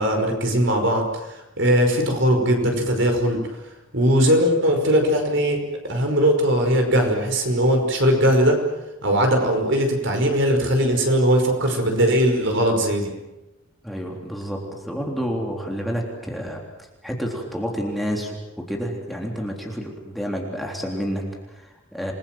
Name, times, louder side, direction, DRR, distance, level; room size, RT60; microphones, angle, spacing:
voice 1, 0.0-3.4 3.9-5.6 5.8-8.6 9.0-13.1, equal, 60° right, 4 dB, 5.4 m, -20 dB
voice 2, 13.8-16.6 17.0-22.1, equal, ahead, -1 dB, 3.6 m, -29 dB
28.5 x 21.5 x 7.7 m, 1.0 s
head